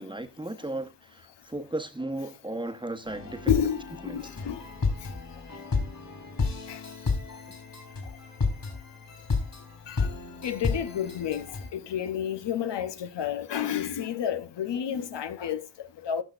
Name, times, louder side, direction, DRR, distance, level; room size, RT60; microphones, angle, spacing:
voice 1, 0.0-3.5 4.0-4.2, right 1 dB, 10° right, 1.0 m, -35 dB
sound 1, 3.1-11.7, left 4 dB, 50° left, 3.9 m, -32 dB
voice 2, 3.5-4.6 6.7-6.8 9.9-10.1 10.4-16.2, left 9 dB, 90° left, 0.9 m, -30 dB
17.5 x 6.1 x 2.5 m
cardioid pair, 65°, 41 cm